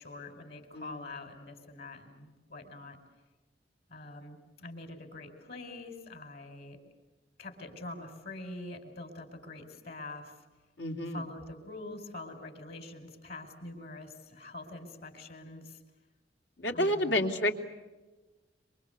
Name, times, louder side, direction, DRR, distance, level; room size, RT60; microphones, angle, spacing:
voice 1, 0.0-3.0 3.9-6.8 7.4-10.3 11.1-15.8 16.7-17.3, left 2 dB, 60° left, 7 dB, 5.2 m, -45 dB
voice 2, 0.7-1.0 10.8-11.2 16.6-17.6, left 1 dB, 80° left, 4 dB, 3.0 m, -30 dB
27.5 x 25.5 x 8.3 m, 1.2 s
head